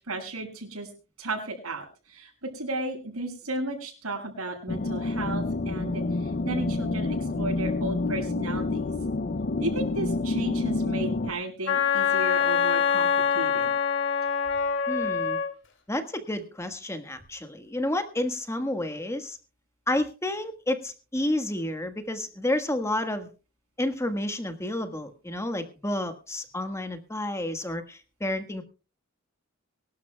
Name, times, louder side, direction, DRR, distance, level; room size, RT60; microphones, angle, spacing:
voice 1, 0.1-0.9 1.2-6.0 6.4-8.9 9.6-13.7, right 2 dB, 85° right, 1 dB, 7.1 m, -34 dB
sound 1, 4.7-11.3, left 2 dB, 40° left, 0.5 m, -28 dB
Wind instrument woodwind instrument, 11.7-15.5, left 7 dB, 55° left, 2.6 m, -24 dB
voice 2, 14.9-15.4 15.9-19.4 19.9-23.3 23.8-28.6, left 1 dB, 15° left, 8 dB, 1.5 m, -30 dB
24.0 x 12.0 x 2.3 m, 0.34 s
head